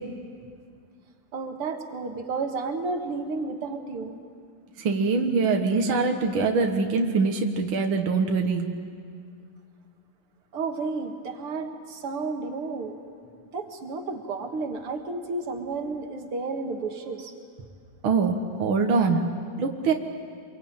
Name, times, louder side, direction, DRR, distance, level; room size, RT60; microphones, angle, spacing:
voice 1, 1.3-4.2 10.5-13.0 13.5-17.3, right 3 dB, 85° right, 4 dB, 2.6 m, -32 dB
voice 2, 4.8-8.7 18.0-19.3 19.6-19.9, right 4 dB, 65° right, 3 dB, 2.2 m, -23 dB
26.0 x 23.5 x 8.8 m, 2.2 s
omnidirectional pair, 2.4 m